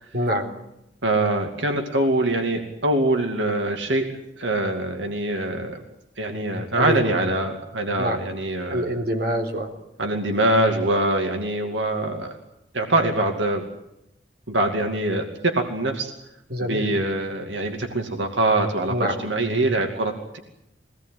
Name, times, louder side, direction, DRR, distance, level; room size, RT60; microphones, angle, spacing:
voice 1, 0.1-0.5 6.5-7.1 8.0-8.2 8.7-9.7 16.5-16.9 18.9-19.2, equal, 55° right, 2 dB, 3.7 m, -25 dB
voice 2, 1.0-5.8 6.2-9.0 10.0-12.4 12.7-13.7 14.5-16.1 16.6-20.4, right 2 dB, 85° right, 3 dB, 2.6 m, -24 dB
23.0 x 18.5 x 9.4 m, 0.85 s
head